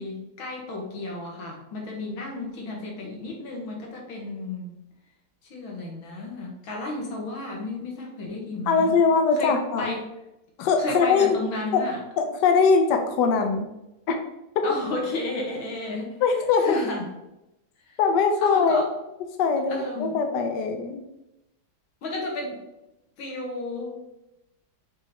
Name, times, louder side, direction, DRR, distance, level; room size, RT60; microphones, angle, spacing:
voice 1, 0.0-4.7 5.5-9.0 9.4-10.1 10.8-12.0 14.6-16.2 16.6-17.1 17.9-18.0 18.4-18.9 19.7-20.2 22.0-22.6 23.2-24.0, left 2 dB, 85° left, -1 dB, 2.3 m, -32 dB
voice 2, 8.7-9.9 10.6-11.4 11.7-11.8 12.2-13.7 14.1-14.2 16.2-16.8 18.0-18.8 19.4-21.0, left 5 dB, 70° left, 5 dB, 1.2 m, -21 dB
6.2 x 3.9 x 4.2 m, 0.90 s
omnidirectional pair, 2.1 m